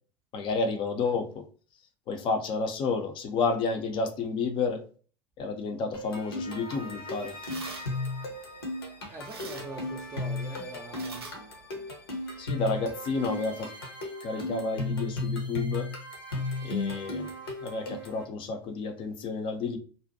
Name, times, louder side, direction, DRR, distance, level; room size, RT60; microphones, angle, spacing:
voice 1, 0.3-1.4 2.1-4.8 5.4-7.3 12.4-13.7 14.2-15.9 16.6-17.3 17.6-19.8, left 4 dB, 40° left, 6 dB, 0.5 m, -30 dB
sound 1, 5.9-18.2, left 2 dB, 80° left, 0.7 m, -35 dB
sound 2, 6.4-12.4, right 4 dB, 85° right, 0.5 m, -49 dB
voice 2, 9.1-11.3, right 2 dB, 25° right, 1 dB, 0.4 m, -43 dB
2.5 x 2.1 x 2.6 m, 0.40 s
figure-of-eight pair, 75°, 12 cm